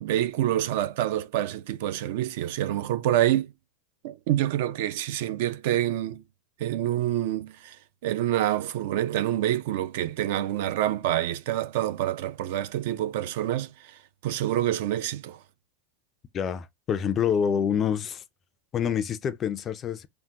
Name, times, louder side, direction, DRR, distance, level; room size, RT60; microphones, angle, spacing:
voice 1, 0.0-3.5 4.0-6.2 6.6-7.8 8.0-15.4, right 13 dB, 60° right, 0.4 m, -27 dB
voice 2, 16.3-18.2 18.7-20.1, left 8 dB, 25° left, 0.3 m, -27 dB
3.4 x 2.1 x 2.7 m
supercardioid pair, 155°, 0 cm